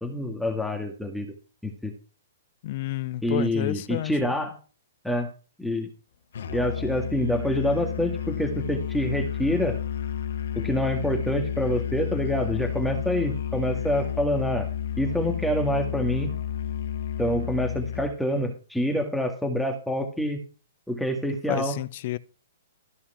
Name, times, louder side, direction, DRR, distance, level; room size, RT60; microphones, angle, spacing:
voice 1, 0.0-1.3 1.6-1.9 3.2-4.5 5.0-5.3 5.6-5.9 6.5-9.8 10.5-14.7 15.0-16.3 17.2-20.4 20.9-21.8, equal, ahead, 2.0 m, -26 dB
voice 2, 2.6-4.1 21.5-22.2, left 16 dB, 50° left, 0.7 m, -30 dB
Musical instrument, 6.3-18.2, left 10 dB, 65° left, 1.5 m, -31 dB
14.0 x 5.7 x 5.6 m
hypercardioid pair, 125°, 0 cm